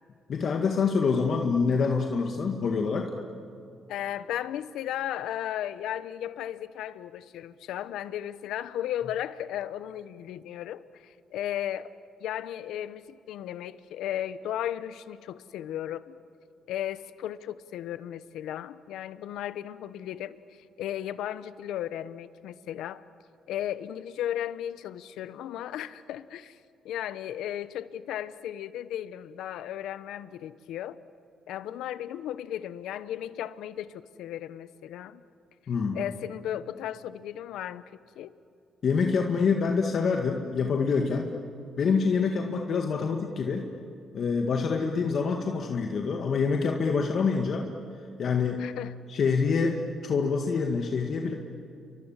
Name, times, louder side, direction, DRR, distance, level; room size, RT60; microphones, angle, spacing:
voice 1, 0.3-3.1 35.7-36.0 38.8-41.3 41.8-43.7 44.1-47.7 48.2-48.6 49.1-51.3, left 5 dB, 55° left, 3 dB, 2.0 m, -26 dB
voice 2, 3.9-11.9 12.2-16.2 16.7-23.0 23.5-26.6 26.8-31.0 31.5-35.2 35.9-38.3 48.6-48.9, left 11 dB, 85° left, 15 dB, 0.9 m, -35 dB
29.5 x 23.5 x 7.4 m, 2.6 s
cardioid pair, 90°, 0 cm